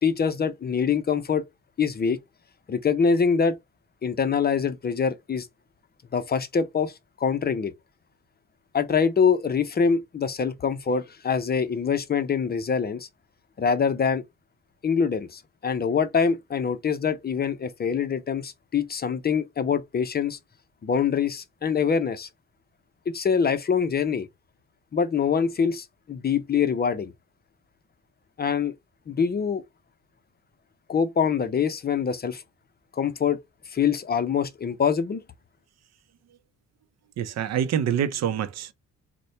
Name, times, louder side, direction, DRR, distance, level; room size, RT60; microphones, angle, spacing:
voice 1, 0.0-1.4 1.8-2.2 2.7-3.6 4.0-5.5 6.1-6.9 7.2-7.7 8.7-13.1 13.6-14.2 14.8-20.4 20.8-22.3 23.1-24.3 24.9-27.1 28.4-28.7 29.1-29.6 30.9-32.4 32.9-33.4 33.7-35.2, left 6 dB, 30° left, 0.6 m, -24 dB
voice 2, 37.2-38.7, right 9 dB, 60° right, 0.6 m, -26 dB
4.1 x 2.2 x 3.1 m
cardioid pair, 90°, 30 cm